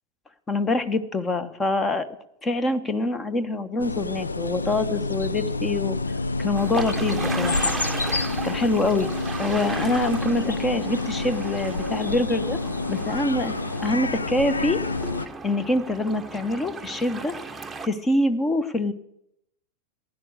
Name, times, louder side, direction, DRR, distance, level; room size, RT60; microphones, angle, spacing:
voice 1, 0.5-2.1 2.4-5.9 6.4-7.7 8.4-9.1 9.4-12.6 12.9-13.5 13.8-14.8 15.4-17.3 17.8-18.9, left 2 dB, 15° left, 13 dB, 1.1 m, -25 dB
sound 1, 3.8-15.3, left 3 dB, 75° left, 0.6 m, -28 dB
sound 2, 6.5-17.9, right 4 dB, 10° right, 1.0 m, -35 dB
15.5 x 11.0 x 6.5 m, 0.78 s
figure-of-eight pair, 90°, 0 cm